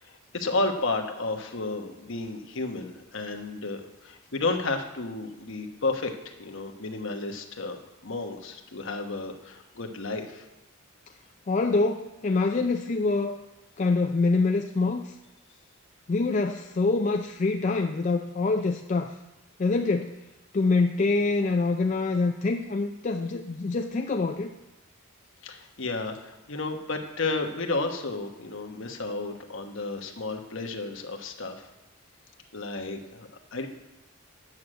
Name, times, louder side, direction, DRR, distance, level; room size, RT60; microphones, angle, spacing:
voice 1, 0.0-10.4 25.4-31.7 32.5-33.7, left 3 dB, 60° left, 4 dB, 1.1 m, -32 dB
voice 2, 11.5-13.4 13.8-15.1 16.1-19.1 19.6-20.2 20.5-24.5, left 3 dB, 35° left, 4 dB, 0.4 m, -25 dB
9.3 x 6.4 x 7.7 m, 1.0 s
head